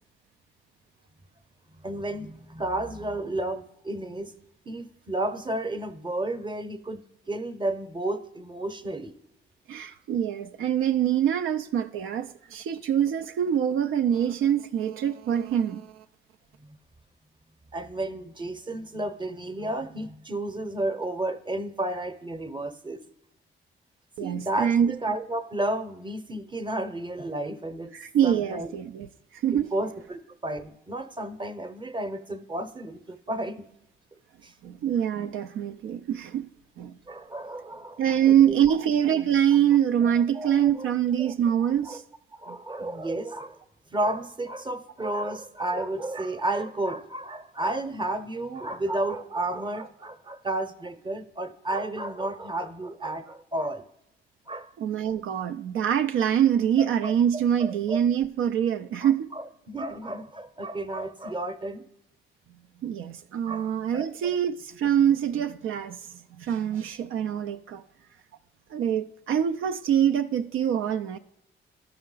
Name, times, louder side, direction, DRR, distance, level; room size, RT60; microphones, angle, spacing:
voice 1, 1.8-4.3 4.7-9.1 16.6-16.8 17.7-23.0 24.2-27.9 28.2-28.7 29.5-33.6 34.4-34.5 37.1-38.6 40.3-40.9 41.2-41.3 41.9-42.0 42.3-43.6 43.9-53.8 54.5-54.7 56.8-57.1 57.6-58.0 59.0-61.8 63.4-64.1, right 1 dB, 25° right, 0.8 m, -32 dB
voice 2, 9.7-15.9 24.2-24.9 27.9-29.1 29.4-29.7 34.6-36.5 36.8-36.9 38.0-42.0 42.5-42.6 54.8-59.3 62.8-67.8 68.7-71.2, right 9 dB, 80° right, 0.4 m, -25 dB
12.0 x 5.6 x 3.9 m
cardioid pair, 65°, 21 cm